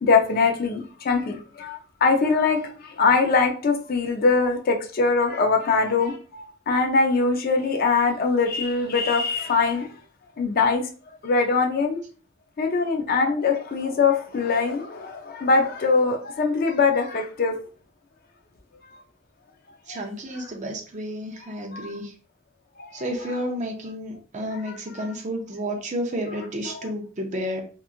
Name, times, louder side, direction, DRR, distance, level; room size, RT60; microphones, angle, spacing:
voice 1, 0.0-9.9 10.4-10.9 11.2-12.0 12.6-17.6 19.9-20.0 21.7-21.9 22.8-23.1 24.6-24.7 26.7-26.8, left 4 dB, 45° left, 0.4 m, -22 dB
voice 2, 19.9-22.1 22.9-27.6, equal, 35° right, 0.5 m, -31 dB
2.9 x 2.3 x 2.4 m
head